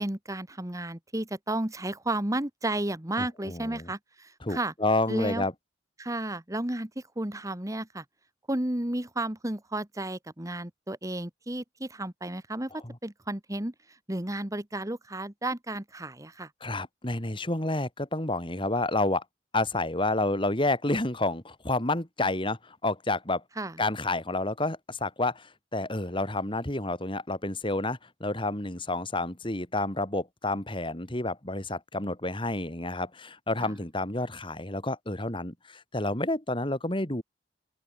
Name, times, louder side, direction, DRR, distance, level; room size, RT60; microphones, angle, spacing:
voice 1, 0.0-4.7 5.1-5.4 6.0-8.0 8.5-13.7 14.1-16.5 23.6-23.8 33.6-33.7, right 1 dB, 20° right, 1.5 m, -33 dB
voice 2, 3.2-3.9 4.4-5.5 12.8-12.9 16.6-19.2 19.5-23.4 23.8-37.2, left 2 dB, 30° left, 3.1 m, -29 dB
open air
head